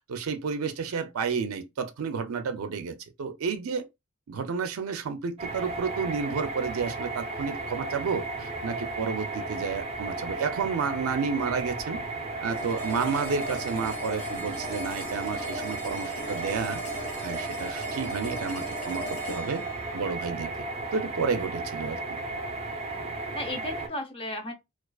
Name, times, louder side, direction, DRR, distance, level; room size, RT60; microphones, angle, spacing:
voice 1, 0.1-3.8 4.3-12.0 12.4-16.8 17.2-19.6 19.9-20.7 20.9-22.2, right 5 dB, 75° right, 0.4 m, -31 dB
sound 1, 5.4-23.9, right 2 dB, 30° right, 0.6 m, -34 dB
sound 2, 12.5-21.5, equal, 80° left, 1.0 m, -40 dB
voice 2, 22.9-24.5, left 1 dB, 25° left, 0.6 m, -36 dB
2.4 x 2.3 x 2.3 m
head